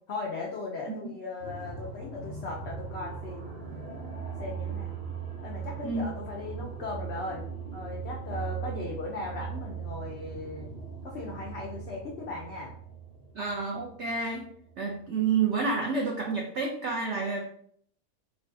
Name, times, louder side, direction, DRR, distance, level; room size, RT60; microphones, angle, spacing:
voice 1, 0.1-3.8 4.4-5.0 5.4-7.4 7.7-10.7 11.0-12.7, left 3 dB, 80° left, -2 dB, 0.5 m, -38 dB
sound 1, 1.4-15.1, right 6 dB, 40° right, 1.0 m, -39 dB
voice 2, 13.3-17.5, right 4 dB, 85° right, 0 dB, 0.6 m, -29 dB
4.6 x 2.2 x 2.6 m, 0.63 s
omnidirectional pair, 1.8 m